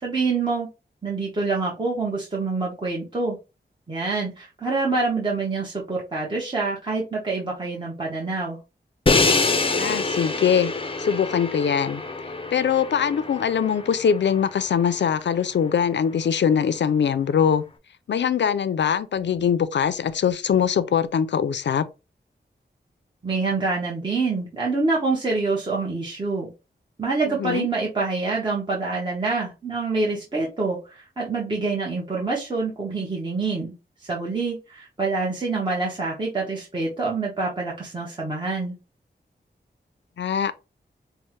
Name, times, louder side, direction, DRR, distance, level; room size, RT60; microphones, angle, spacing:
voice 1, 0.0-0.7 1.0-3.4 3.9-8.6 23.2-26.5 27.0-33.7 34.0-38.7, right 3 dB, 25° right, 1.0 m, -26 dB
Crash cymbal, 9.1-15.0, left 3 dB, 30° left, 0.5 m, -26 dB
voice 2, 9.8-10.7 11.0-12.0 12.5-17.6 18.1-21.9 27.3-27.7 40.2-40.5, left 7 dB, 85° left, 0.4 m, -22 dB
5.4 x 2.1 x 3.0 m
wide cardioid pair, 105°, 18 cm